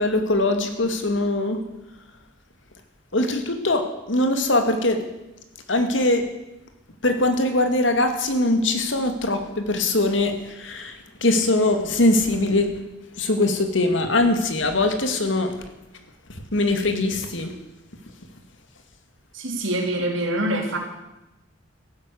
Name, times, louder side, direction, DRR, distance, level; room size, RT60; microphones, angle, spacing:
voice 1, 0.0-1.6 3.1-5.0 5.7-6.3 7.0-12.8 13.2-15.6 16.3-17.5, left 2 dB, 75° left, 6 dB, 2.2 m, -22 dB
voice 2, 19.3-20.8, right 1 dB, 90° right, 2 dB, 3.3 m, -25 dB
14.5 x 11.5 x 8.4 m, 0.95 s
head